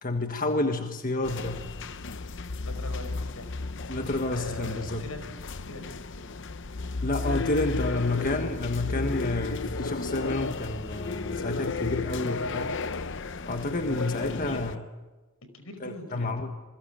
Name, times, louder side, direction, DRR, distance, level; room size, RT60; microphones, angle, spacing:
voice 1, 0.0-1.7 3.9-5.1 7.0-12.7 13.5-14.8 15.8-16.5, left 2 dB, 40° left, 1.5 m, -30 dB
sound 1, 1.2-14.8, left 3 dB, 60° left, 0.8 m, -33 dB
voice 2, 2.6-3.5 4.3-5.2 5.6-5.9 6.2-6.3 7.7-7.9 13.9-14.0 14.3-14.6 15.4-16.3, left 2 dB, 85° left, 5.0 m, -41 dB
28.0 x 22.0 x 9.0 m
head